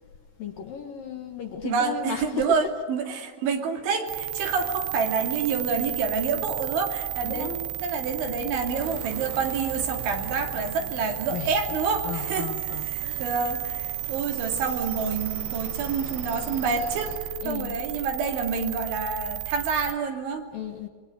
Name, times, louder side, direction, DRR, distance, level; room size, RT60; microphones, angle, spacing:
voice 1, 0.4-2.6 4.4-4.5 7.2-7.6 11.3-11.5 12.0-13.5 17.4-17.8 20.5-20.9, left 8 dB, 60° left, 3 dB, 2.5 m, -35 dB
voice 2, 1.6-12.5 12.9-17.1 17.5-20.5, right 5 dB, 70° right, 3 dB, 5.0 m, -28 dB
sound 1, 4.1-19.9, right 15 dB, 85° right, 3.8 m, -33 dB
sound 2, 8.7-17.2, right 2 dB, 30° right, 6.6 m, -43 dB
26.5 x 23.0 x 9.3 m, 1.5 s
omnidirectional pair, 5.7 m